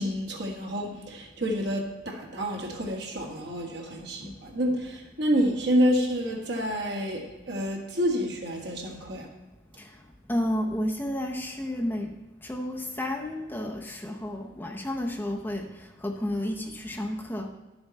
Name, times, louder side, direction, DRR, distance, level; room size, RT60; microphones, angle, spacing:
voice 1, 0.0-9.3, equal, 60° right, 0 dB, 1.6 m, -28 dB
voice 2, 10.3-12.1 12.4-15.7 16.0-17.5, left 1 dB, 10° left, 2 dB, 0.7 m, -31 dB
10.5 x 7.0 x 4.1 m, 1.1 s
head